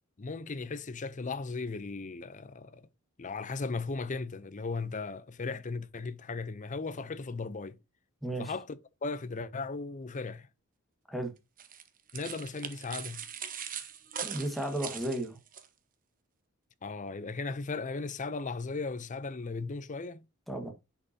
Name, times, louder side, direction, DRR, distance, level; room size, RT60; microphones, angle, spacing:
voice 1, 0.2-2.9 3.2-7.8 8.4-10.5 12.1-13.2 16.8-20.2, left 4 dB, 35° left, 0.6 m, -37 dB
voice 2, 8.2-8.5 11.1-11.3 14.2-15.4 20.5-20.7, right 1 dB, ahead, 1.7 m, -34 dB
sound 1, 11.6-15.7, right 8 dB, 40° right, 1.1 m, -41 dB
10.0 x 5.6 x 2.8 m
head